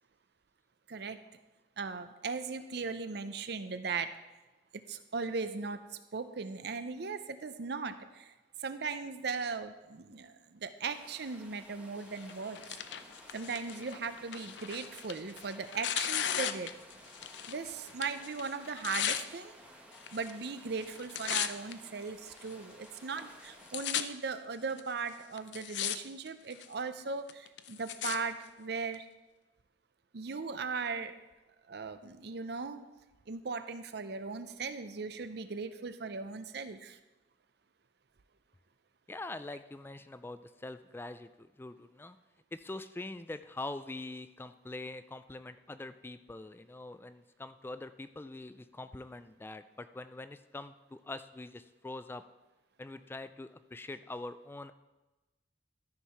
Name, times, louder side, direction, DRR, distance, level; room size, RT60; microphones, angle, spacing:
voice 1, 0.9-1.2 1.8-4.2 4.9-5.8 6.1-8.3 8.6-12.6 13.3-16.7 17.5-19.6 20.1-29.1 30.1-31.2 31.7-32.8 33.3-37.0, right 4 dB, 65° right, 11 dB, 0.6 m, -38 dB
sound 1, 10.8-23.9, right 1 dB, 5° right, 1.6 m, -56 dB
Tearing, 12.2-17.6 17.9-19.2 20.0-20.5 20.8-21.7 22.4-22.5 23.2-23.3 23.5-24.0 24.8-24.9 25.4-26.0 26.3-26.7 27.3-28.2 28.9-29.0, left 10 dB, 80° left, 0.5 m, -36 dB
voice 2, 39.1-42.2 42.5-52.2 52.8-54.7, left 2 dB, 15° left, 11 dB, 0.3 m, -44 dB
13.0 x 4.7 x 5.6 m, 1.1 s
head